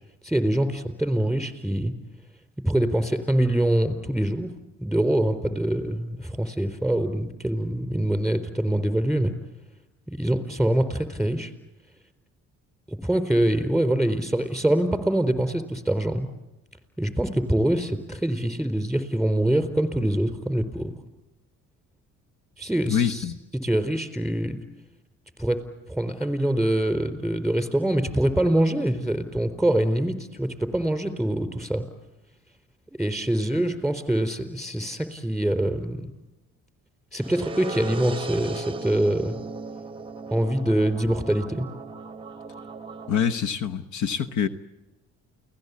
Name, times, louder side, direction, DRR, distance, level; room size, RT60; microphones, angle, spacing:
voice 1, 0.2-1.9 2.6-4.5 4.8-9.3 10.1-11.5 12.9-16.3 17.0-20.9 22.6-23.2 23.6-24.6 25.4-25.6 25.9-31.8 33.0-36.1 37.1-39.4 40.3-41.7, right 1 dB, ahead, 4.1 m, -24 dB
voice 2, 22.9-23.3 43.1-44.5, left 8 dB, 75° left, 1.1 m, -25 dB
sound 1, 37.2-43.2, right 3 dB, 15° right, 0.8 m, -37 dB
29.0 x 18.0 x 8.4 m
cardioid pair, 90°, 30 cm